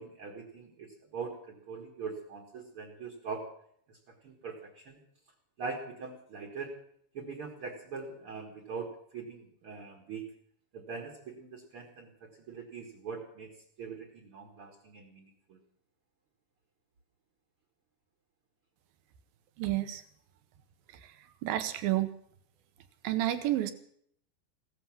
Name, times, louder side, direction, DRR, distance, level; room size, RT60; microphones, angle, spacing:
voice 1, 0.0-3.5 3.9-5.0 5.6-6.7 7.1-10.3 10.7-13.5 13.8-15.6, right 5 dB, 50° right, 3 dB, 1.9 m, -42 dB
voice 2, 19.6-20.0 21.4-22.1 23.0-23.7, right 14 dB, 75° right, 11 dB, 2.6 m, -29 dB
16.0 x 13.5 x 5.9 m, 0.63 s
omnidirectional pair, 4.5 m